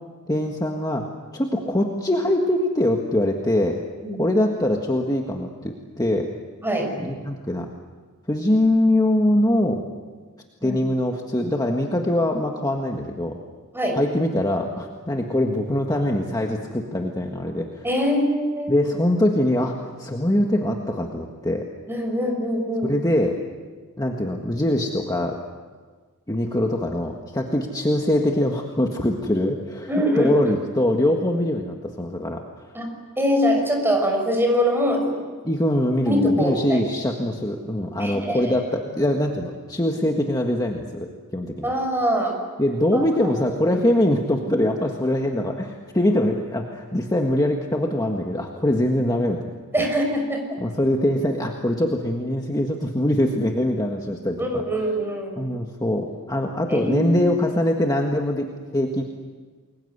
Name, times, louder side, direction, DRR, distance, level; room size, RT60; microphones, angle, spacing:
voice 1, 0.3-1.0 1.3-3.8 4.2-6.3 7.0-7.7 8.3-9.8 10.6-13.4 14.0-17.9 18.7-21.7 22.8-23.4 24.0-25.4 26.3-29.9 30.2-32.4 35.4-41.7 42.6-49.9 50.6-54.6 55.4-58.5 58.7-59.0, left 1 dB, 15° left, 1 dB, 1.6 m, -23 dB
voice 2, 17.8-18.8 21.9-22.9 29.9-30.4 32.7-32.9 33.2-35.2 36.0-36.8 38.0-38.6 41.6-42.4 42.9-43.8 49.7-50.6 54.4-55.5 56.7-57.1, equal, 10° right, 2 dB, 6.1 m, -23 dB
29.5 x 22.0 x 8.1 m, 1.4 s
head